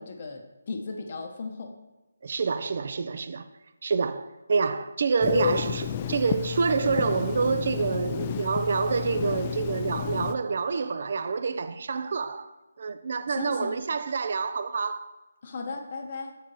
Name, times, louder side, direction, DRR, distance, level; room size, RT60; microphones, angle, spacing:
voice 1, 0.0-1.8 13.3-13.8 15.4-16.3, left 3 dB, 45° left, 0.7 m, -36 dB
voice 2, 2.2-3.5 3.8-12.5 12.8-15.1, right 5 dB, 50° right, 0.3 m, -27 dB
Telephone, 5.2-10.3, left 9 dB, 30° left, 0.3 m, -31 dB
7.7 x 4.6 x 3.0 m
figure-of-eight pair, 155°, 0 cm